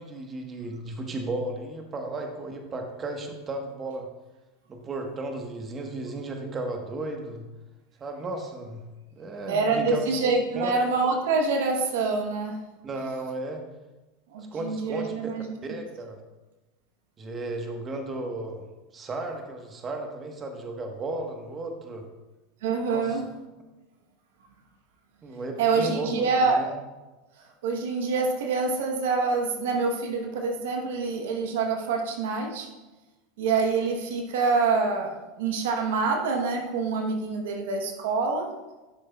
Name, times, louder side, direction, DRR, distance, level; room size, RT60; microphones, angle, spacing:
voice 1, 0.0-4.1 4.7-7.4 8.0-8.8 9.1-10.0 10.5-10.8 12.8-13.6 14.5-15.1 15.6-16.2 17.2-18.6 18.9-22.1 22.9-23.2 25.2-26.7, right 2 dB, 30° right, 3 dB, 1.2 m, -34 dB
voice 2, 9.5-12.6 14.3-15.5 22.6-23.3 25.6-26.7 27.6-32.7 33.4-38.5, right 4 dB, 80° right, 3 dB, 1.0 m, -26 dB
11.5 x 6.3 x 2.3 m, 1.1 s
hypercardioid pair, 100°, 0 cm